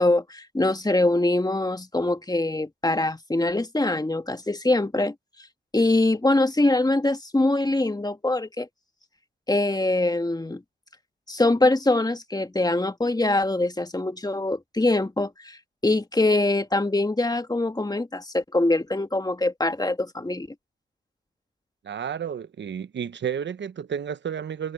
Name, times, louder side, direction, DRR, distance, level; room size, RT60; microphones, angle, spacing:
voice 1, 0.0-5.1 5.7-8.7 9.5-10.6 11.3-15.6 15.8-20.5, left 2 dB, 20° left, 1.8 m, -23 dB
voice 2, 21.8-24.7, right 8 dB, 75° right, 1.0 m, -31 dB
cardioid pair, 45°, 19 cm